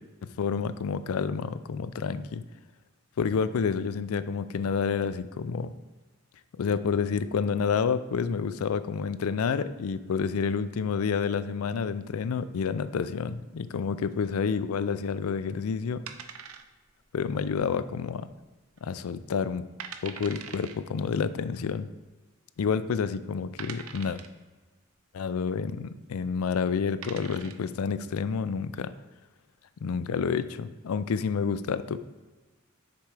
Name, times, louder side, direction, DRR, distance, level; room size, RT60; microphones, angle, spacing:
voice 1, 0.2-2.4 3.2-5.7 6.6-16.0 17.1-18.3 18.8-19.6 20.0-21.9 22.6-24.2 25.1-28.9 29.8-32.0, left 6 dB, 90° left, 14 dB, 0.4 m, -29 dB
sound 1, 16.1-17.0 17.3-17.4 18.0-18.4 18.8-18.9 19.4-19.5 19.8-20.8 21.8-21.9 22.6-22.7 23.6-24.4 26.2-26.4 26.8-27.7, right 7 dB, 85° right, 0.6 m, -42 dB
6.7 x 4.6 x 4.8 m, 1.3 s
head